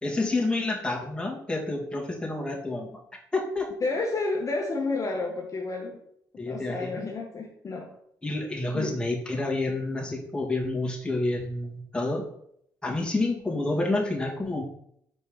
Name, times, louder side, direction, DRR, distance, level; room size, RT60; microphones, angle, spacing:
voice 1, 0.0-2.9 3.3-3.7 6.4-7.1 8.2-12.3 12.8-14.6, left 2 dB, 10° left, -2 dB, 2.4 m, -29 dB
voice 2, 3.8-6.0 6.5-7.9 8.7-8.9, left 3 dB, 45° left, 0 dB, 1.2 m, -30 dB
5.2 x 4.3 x 5.5 m, 0.71 s
supercardioid pair, 55°, 8 cm